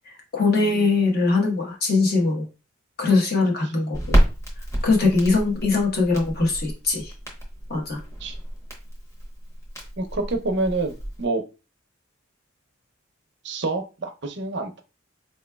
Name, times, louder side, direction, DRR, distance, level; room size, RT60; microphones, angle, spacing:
voice 1, 0.1-2.4 3.0-4.2 4.8-7.1 7.7-8.0, left 3 dB, 50° left, 0 dB, 1.1 m, -21 dB
Crackle, 3.9-11.2, equal, 15° left, 1.0 m, -28 dB
voice 2, 10.0-11.4 13.4-14.8, right 2 dB, 60° right, 4 dB, 0.6 m, -27 dB
4.4 x 3.0 x 2.2 m, 0.30 s
head